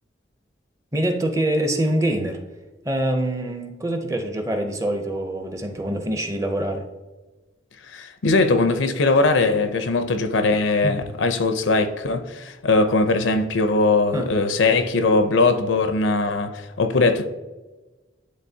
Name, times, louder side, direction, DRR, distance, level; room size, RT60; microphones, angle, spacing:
voice 1, 0.9-2.4 2.8-6.8 10.8-11.0 14.1-14.3, right 1 dB, 15° right, 0.6 m, -24 dB
voice 2, 7.9-17.3, left 3 dB, 85° left, 0.6 m, -20 dB
10.0 x 3.8 x 2.7 m
head